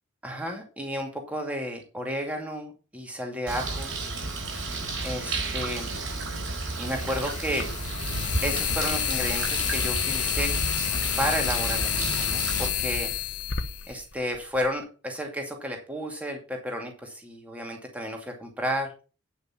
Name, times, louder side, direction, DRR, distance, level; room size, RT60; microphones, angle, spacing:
voice 1, 0.2-3.9 5.0-5.9 6.8-7.7 8.4-10.6 11.2-13.1 13.9-18.9, equal, 5° right, 2 dB, 2.4 m, -32 dB
Bird, 3.5-12.7, right 3 dB, 90° right, 4.4 m, -32 dB
sound 1, 5.3-5.4 6.7-14.7, left 10 dB, 65° left, 1.0 m, -29 dB
9.5 x 5.9 x 5.8 m, 0.34 s
head